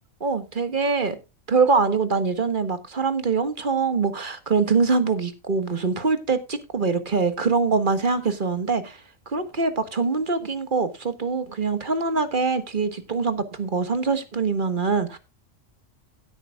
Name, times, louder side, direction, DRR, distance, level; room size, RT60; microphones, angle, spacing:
voice 1, 0.2-1.2 1.5-9.0 9.3-15.2, right 4 dB, 40° right, 1.6 m, -24 dB
17.0 x 8.9 x 2.3 m
omnidirectional pair, 1.3 m